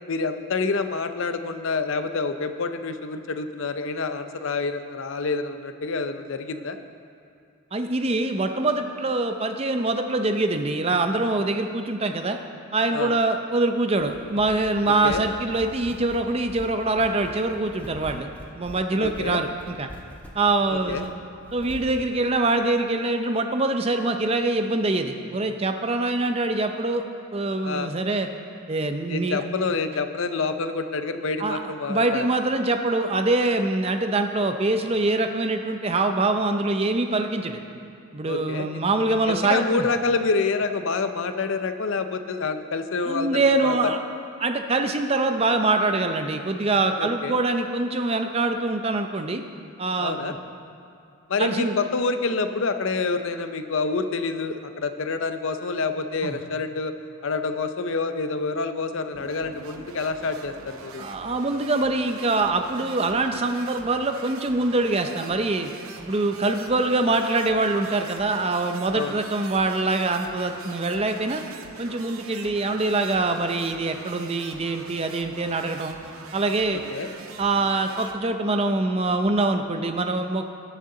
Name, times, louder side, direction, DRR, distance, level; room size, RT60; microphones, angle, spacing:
voice 1, 0.1-6.8 12.9-13.1 14.8-15.2 19.0-19.4 20.7-21.0 27.6-27.9 29.1-32.3 38.2-38.7 39.3-43.8 47.0-47.4 50.0-50.3 51.3-56.9 57.2-61.1 68.9-69.1 76.7-77.1, left 4 dB, 60° left, 9 dB, 0.6 m, -27 dB
voice 2, 7.7-12.4 12.7-18.3 18.5-19.9 20.3-21.1 21.5-27.0 27.3-28.3 28.7-29.4 31.4-31.6 31.9-37.6 38.1-39.9 43.0-44.0 44.4-49.4 49.8-50.4 51.4-51.8 56.2-56.4 61.0-65.7 66.0-71.4 71.8-76.0 76.3-76.8 77.4-80.4, right 2 dB, 25° right, 6 dB, 0.5 m, -24 dB
sound 1, 14.0-22.1, equal, 5° left, 0.8 m, -43 dB
sound 2, 59.1-78.2, right 4 dB, 70° right, 0.7 m, -43 dB
19.5 x 6.6 x 3.8 m, 2.5 s
head